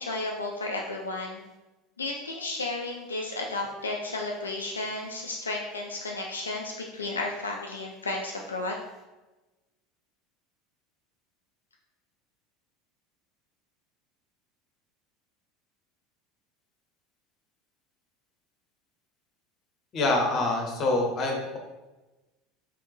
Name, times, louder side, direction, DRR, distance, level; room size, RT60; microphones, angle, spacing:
voice 1, 0.0-1.4 2.0-8.8, left 2 dB, 80° left, 0 dB, 0.3 m, -33 dB
voice 2, 19.9-21.6, left 2 dB, 40° left, 1 dB, 0.9 m, -26 dB
3.7 x 3.4 x 3.1 m, 1.1 s
figure-of-eight pair, 75°, 0 cm